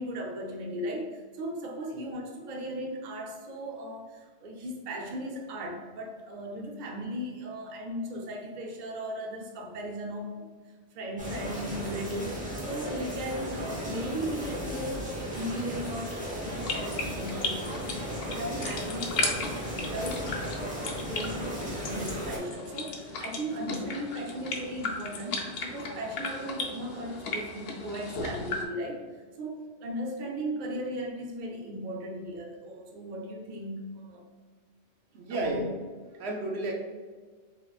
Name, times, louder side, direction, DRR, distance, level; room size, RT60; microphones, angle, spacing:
voice 1, 0.0-20.7 21.0-25.4 25.7-29.0 29.4-34.2 35.3-35.7, equal, 50° right, 1 dB, 0.7 m, -37 dB
sound 1, 11.2-22.4, equal, 10° right, 0.6 m, -35 dB
sound 2, 16.5-28.6, left 3 dB, 65° left, 0.8 m, -36 dB
voice 2, 35.1-35.7 36.1-36.7, right 1 dB, 70° right, 0 dB, 1.0 m, -32 dB
4.9 x 2.9 x 2.4 m, 1.5 s
omnidirectional pair, 1.1 m